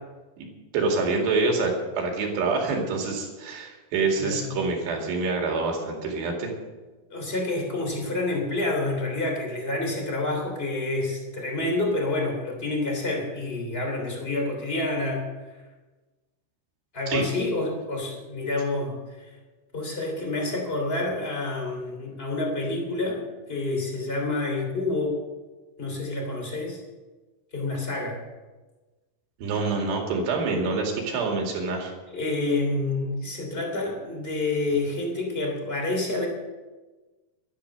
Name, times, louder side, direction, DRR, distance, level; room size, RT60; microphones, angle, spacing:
voice 1, 0.7-6.5 17.1-17.3 29.4-31.9, right 3 dB, 90° right, 1 dB, 4.5 m, -26 dB
voice 2, 4.2-4.5 7.1-15.2 16.9-19.3 19.7-23.2 23.5-25.2 25.8-26.8 27.5-28.2 32.1-36.3, left 2 dB, 15° left, 1 dB, 2.8 m, -28 dB
12.0 x 11.5 x 6.6 m, 1.2 s
omnidirectional pair, 4.7 m